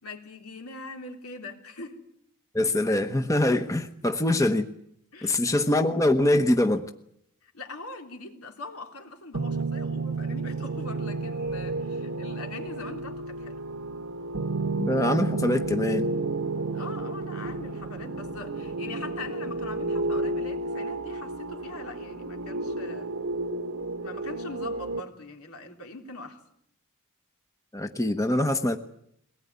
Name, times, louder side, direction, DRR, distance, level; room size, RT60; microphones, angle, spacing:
voice 1, 0.0-2.0 5.1-5.7 7.4-13.6 16.7-23.2 24.0-26.4, left 2 dB, 80° left, 3 dB, 3.5 m, -42 dB
voice 2, 2.5-4.7 5.2-6.8 14.8-16.1 27.7-28.8, left 1 dB, 15° left, 7 dB, 1.0 m, -24 dB
sound 1, 9.3-25.0, right 2 dB, 70° right, 1.1 m, -31 dB
22.0 x 19.0 x 9.5 m, 0.73 s
head